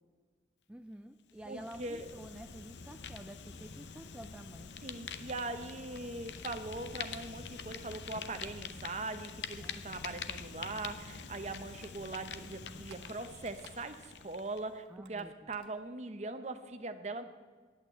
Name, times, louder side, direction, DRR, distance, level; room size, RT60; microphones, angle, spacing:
voice 1, 0.7-4.7 9.6-9.8 14.9-15.5, right 1 dB, 5° right, 6 dB, 0.3 m, -49 dB
Fire, 1.3-14.7, left 6 dB, 85° left, 0.7 m, -45 dB
voice 2, 1.5-2.1 4.8-17.2, right 2 dB, 40° right, 9 dB, 0.7 m, -41 dB
sound 1, 9.3-11.5 11.7-14.2 14.5-15.8, right 5 dB, 80° right, 1.3 m, -61 dB
8.9 x 8.7 x 9.0 m, 1.4 s
head